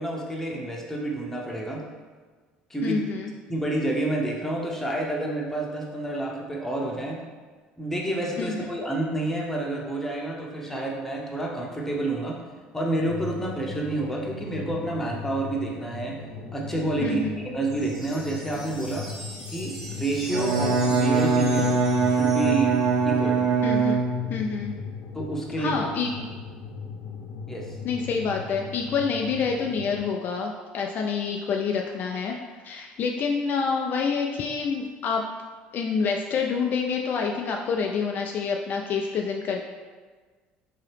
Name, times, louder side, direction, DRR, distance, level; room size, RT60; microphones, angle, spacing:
voice 1, 0.0-1.8 2.7-3.0 3.5-7.2 7.8-12.4 12.7-16.2 16.5-19.1 19.5-21.7 22.1-23.4 25.1-25.8 27.5-27.8, right 2 dB, 10° left, -2 dB, 0.8 m, -29 dB
voice 2, 2.8-3.3 8.4-8.5 17.0-17.4 23.6-24.0 24.3-24.7 25.6-26.1 27.8-32.4 32.6-35.3 35.7-39.6, left 5 dB, 50° left, 1 dB, 0.3 m, -27 dB
sound 1, 13.1-30.0, left 4 dB, 85° left, 0.6 m, -38 dB
sound 2, 17.6-23.1, equal, 10° right, 1.2 m, -41 dB
Bowed string instrument, 20.2-24.5, right 4 dB, 70° right, 0.5 m, -23 dB
3.7 x 2.8 x 3.3 m, 1.4 s
supercardioid pair, 80°, 4 cm